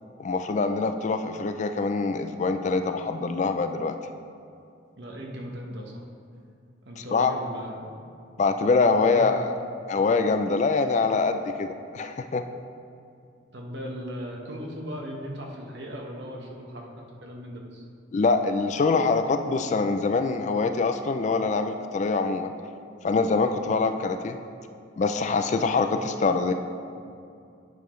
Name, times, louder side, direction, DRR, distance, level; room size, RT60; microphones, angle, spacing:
voice 1, 0.2-4.0 7.0-7.3 8.4-9.5 9.9-12.4 18.1-22.5 23.0-24.4 25.0-26.5, left 4 dB, 35° left, 8 dB, 0.3 m, -24 dB
voice 2, 4.9-6.0 6.8-7.9 8.9-9.4 13.5-16.9 17.2-17.8, equal, 60° right, 0 dB, 1.1 m, -37 dB
10.5 x 6.8 x 3.1 m, 2.4 s
head